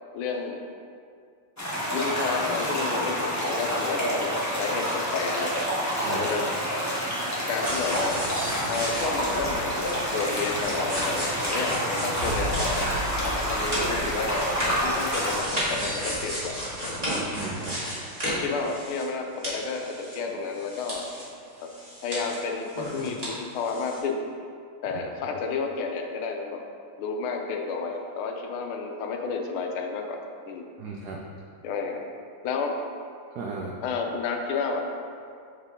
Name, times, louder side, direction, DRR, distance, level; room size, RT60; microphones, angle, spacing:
voice 1, 0.1-0.6 1.9-5.6 6.1-6.5 7.5-8.2 8.7-12.9 13.2-17.0 18.2-21.1 21.6-21.7 22.0-24.3 24.8-26.6 27.0-30.7 31.6-32.0 32.4-32.8 33.8-34.9, left 4 dB, 85° left, 3 dB, 1.5 m, -31 dB
sound 1, 1.6-15.4, equal, 20° left, 0.4 m, -28 dB
sound 2, 7.6-19.2 19.4-21.3 21.6-23.3 23.6-24.0, equal, 20° right, 1.5 m, -33 dB
voice 2, 17.3-17.8 30.8-31.2 33.3-33.8, right 4 dB, 85° right, -1 dB, 0.8 m, -36 dB
6.9 x 4.4 x 3.5 m, 2.3 s
omnidirectional pair, 2.3 m